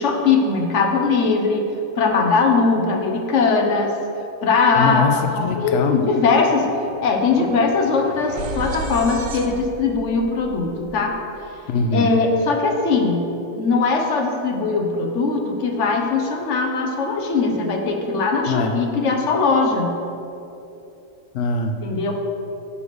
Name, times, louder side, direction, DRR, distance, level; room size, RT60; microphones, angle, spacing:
voice 1, 0.0-1.6 2.0-3.9 4.4-6.7 7.0-11.1 11.9-13.2 13.5-19.9 21.8-22.1, left 4 dB, 45° left, 2 dB, 1.1 m, -20 dB
voice 2, 4.8-6.0 11.7-12.1 18.5-18.7 21.3-21.8, left 4 dB, 85° left, 6 dB, 0.6 m, -22 dB
sound 1, 6.1-11.9, right 3 dB, 60° right, 1.0 m, -36 dB
10.0 x 4.8 x 6.9 m, 2.9 s
omnidirectional pair, 2.0 m